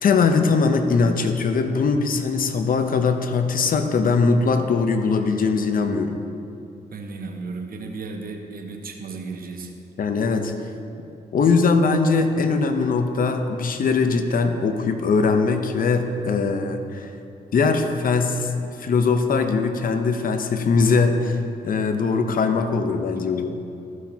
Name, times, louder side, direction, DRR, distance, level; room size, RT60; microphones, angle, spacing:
voice 1, 0.0-6.2 10.0-10.5 11.3-17.1 17.5-18.5 18.8-23.5, left 4 dB, 55° left, 7 dB, 0.8 m, -21 dB
voice 2, 6.9-9.7, right 4 dB, 60° right, 3 dB, 1.1 m, -34 dB
14.0 x 6.2 x 2.9 m, 2.7 s
supercardioid pair, 60°, 17 cm